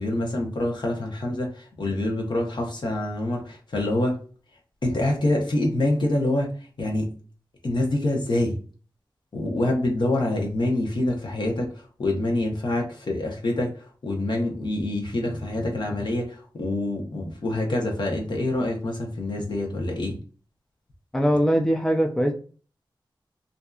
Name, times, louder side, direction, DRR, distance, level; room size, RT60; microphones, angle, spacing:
voice 1, 0.0-4.2 4.8-6.5 6.8-7.1 7.6-8.6 9.3-20.1, left 1 dB, 60° left, 0 dB, 0.8 m, -26 dB
voice 2, 21.1-22.3, equal, 5° left, 3 dB, 0.3 m, -21 dB
2.6 x 2.4 x 2.3 m, 0.39 s
wide cardioid pair, 85°, 9 cm